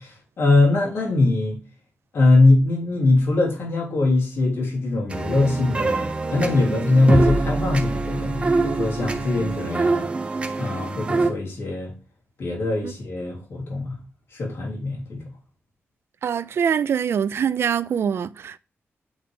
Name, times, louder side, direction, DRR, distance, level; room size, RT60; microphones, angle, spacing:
voice 1, 0.4-1.6 2.1-10.1 10.6-11.9 12.4-14.0 14.3-15.2, left 2 dB, 60° left, 3.3 m, -21 dB
sound 1, 5.1-11.3, right 3 dB, 25° right, 0.9 m, -25 dB
voice 2, 16.2-18.6, right 8 dB, 60° right, 0.3 m, -24 dB
8.7 x 3.9 x 3.5 m
wide cardioid pair, 150°, 5 cm